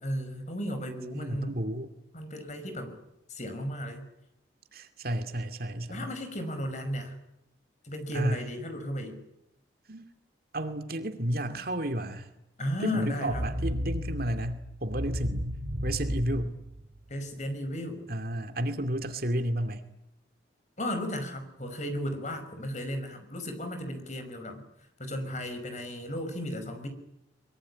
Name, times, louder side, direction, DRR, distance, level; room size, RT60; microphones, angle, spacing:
voice 1, 0.0-1.6 2.1-3.0 3.3-4.0 5.9-7.1 7.8-9.2 12.6-13.4 17.1-18.1 20.8-24.6 25.0-26.9, equal, 40° left, 8 dB, 5.5 m, -34 dB
voice 2, 1.1-1.9 4.7-6.1 8.1-8.4 9.9-10.1 10.5-12.3 12.8-15.5 15.8-16.6 18.1-19.8, right 1 dB, 50° right, 7 dB, 2.4 m, -32 dB
sound 1, 13.3-17.3, equal, 70° right, 2.6 m, -34 dB
23.5 x 23.0 x 9.8 m, 0.83 s
head